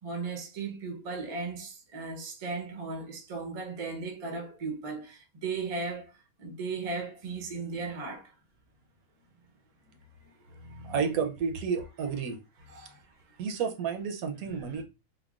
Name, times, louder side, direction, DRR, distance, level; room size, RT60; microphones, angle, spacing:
voice 1, 0.0-6.1 6.4-8.3 9.8-11.2 12.7-13.4 14.6-14.8, right 4 dB, 45° right, 0.5 m, -37 dB
voice 2, 10.8-12.4 13.4-14.8, right 6 dB, 80° right, 1.1 m, -31 dB
3.5 x 2.1 x 2.3 m
omnidirectional pair, 1.5 m